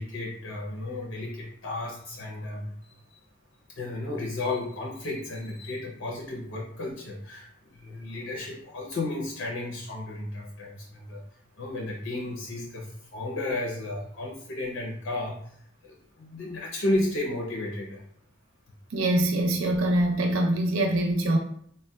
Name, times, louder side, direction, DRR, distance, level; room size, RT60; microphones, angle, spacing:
voice 1, 0.0-2.7 3.8-7.5 7.7-11.2 11.6-15.4 15.8-18.0, left 2 dB, 65° left, 0.5 m, -33 dB
voice 2, 18.9-21.4, right 1 dB, 80° right, 0.5 m, -24 dB
3.8 x 2.1 x 2.2 m
head